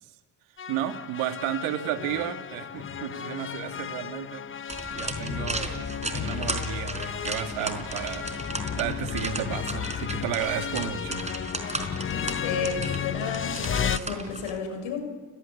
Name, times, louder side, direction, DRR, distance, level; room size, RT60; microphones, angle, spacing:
sound 1, 0.6-14.0, left 8 dB, 25° left, 0.7 m, -33 dB
voice 1, 0.7-4.4 4.9-8.4 8.7-11.2, right 11 dB, 90° right, 7 dB, 2.3 m, -32 dB
sound 2, 4.7-14.6, right 2 dB, 15° right, 4.3 m, -36 dB
voice 2, 12.1-15.1, left 6 dB, 80° left, 7 dB, 6.8 m, -32 dB
29.5 x 17.5 x 9.8 m, 1.5 s
cardioid pair, 90°, 47 cm